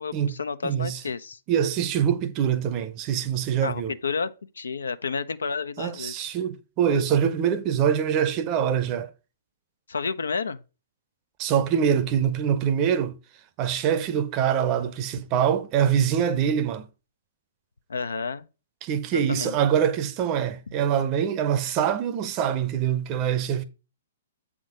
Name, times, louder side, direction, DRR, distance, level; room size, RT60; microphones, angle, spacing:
voice 1, 0.0-1.4 3.6-6.1 9.9-10.6 17.9-18.5 19.1-19.5, left 5 dB, 70° left, 0.5 m, -31 dB
voice 2, 0.6-1.0 1.5-3.9 5.8-9.1 11.4-13.1 13.6-16.9 18.8-23.6, right 8 dB, 30° right, 0.7 m, -24 dB
7.7 x 3.7 x 5.1 m
figure-of-eight pair, 115°, 0 cm